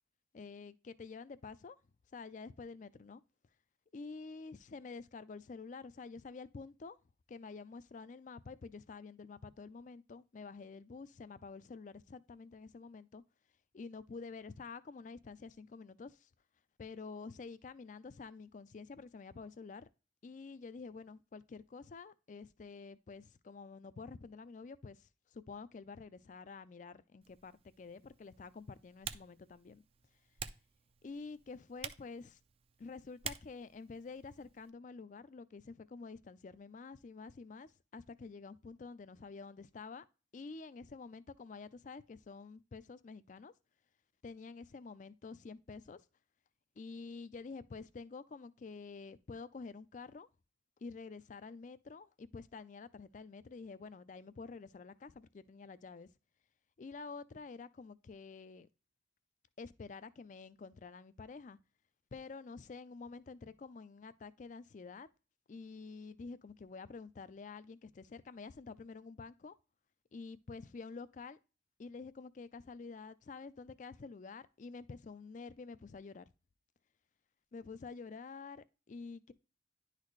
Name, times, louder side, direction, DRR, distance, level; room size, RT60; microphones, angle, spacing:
voice 1, 0.3-1.8 2.1-3.2 3.9-7.0 7.3-13.2 13.7-16.3 16.8-19.9 20.2-27.5 27.8-29.8 31.0-32.4 32.8-40.1 40.3-43.5 44.2-46.0 46.8-50.3 50.8-56.1 56.8-58.7 59.6-61.6 62.1-65.1 65.5-69.5 70.1-71.4 71.8-76.3 77.5-79.3, left 4 dB, 45° left, 0.4 m, -49 dB
Typing, 27.2-34.7, right 7 dB, 30° right, 0.4 m, -50 dB
10.5 x 4.1 x 3.1 m
head